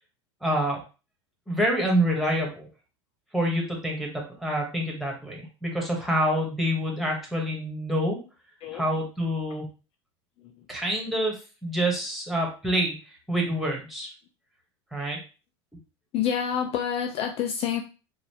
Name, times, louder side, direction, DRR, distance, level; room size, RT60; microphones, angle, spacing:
voice 1, 0.4-0.8 1.5-2.6 3.3-8.2 8.7-9.7 10.7-13.0 13.3-14.1 14.9-15.2, equal, ahead, -1 dB, 1.9 m, -27 dB
voice 2, 16.1-17.8, left 8 dB, 45° left, 4 dB, 0.5 m, -27 dB
3.9 x 2.6 x 3.4 m, 0.33 s
hypercardioid pair, 90°, 14 cm